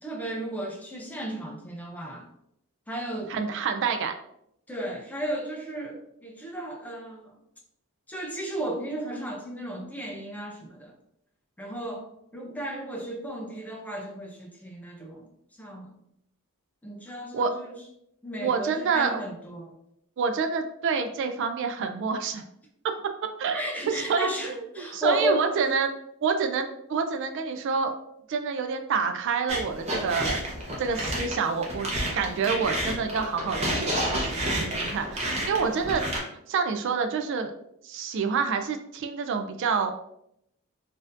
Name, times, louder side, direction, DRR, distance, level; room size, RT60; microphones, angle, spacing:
voice 1, 0.0-2.3 2.9-3.4 4.7-7.3 8.1-10.9 11.6-12.1 12.3-15.9 16.8-17.8 18.2-19.7 23.5-25.9, right 1 dB, 5° left, 0 dB, 0.5 m, -34 dB
voice 2, 3.3-4.1 17.3-17.5 18.4-19.2 20.2-22.4 22.8-23.1 23.4-25.9 26.2-27.9 28.3-30.4 30.8-31.9 32.1-36.1 36.5-37.5 37.8-39.9, right 5 dB, 55° right, 6 dB, 0.3 m, -27 dB
sound 1, 29.5-36.2, right 1 dB, 30° right, 0.8 m, -30 dB
4.1 x 2.6 x 2.5 m, 0.76 s
head